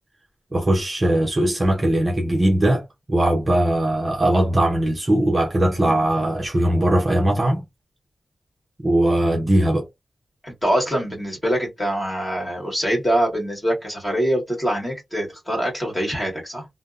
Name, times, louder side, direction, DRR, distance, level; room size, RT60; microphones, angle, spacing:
voice 1, 0.5-2.8 3.1-7.6 8.8-9.9, right 1 dB, 25° right, 0.7 m, -20 dB
voice 2, 10.4-16.7, equal, 15° left, 1.7 m, -24 dB
3.3 x 2.1 x 2.5 m
wide cardioid pair, 120°, 0 cm